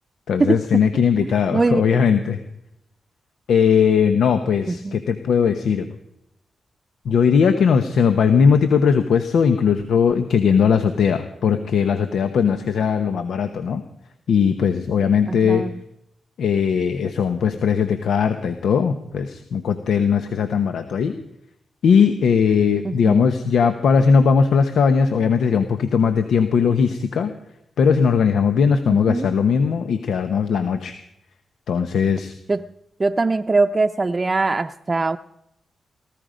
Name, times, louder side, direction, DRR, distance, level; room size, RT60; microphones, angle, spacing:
voice 1, 0.3-2.4 3.5-5.9 7.0-13.8 14.3-15.6 16.4-21.1 21.8-27.3 27.8-30.9 31.7-32.3, left 6 dB, 80° left, 8 dB, 1.0 m, -19 dB
voice 2, 1.2-1.8 4.7-5.0 15.3-15.7 22.8-23.3 28.9-29.3 32.5-32.7 33.0-35.2, right 3 dB, 35° right, 6 dB, 0.6 m, -22 dB
18.5 x 13.5 x 5.1 m, 0.82 s
cardioid pair, 55°, 0 cm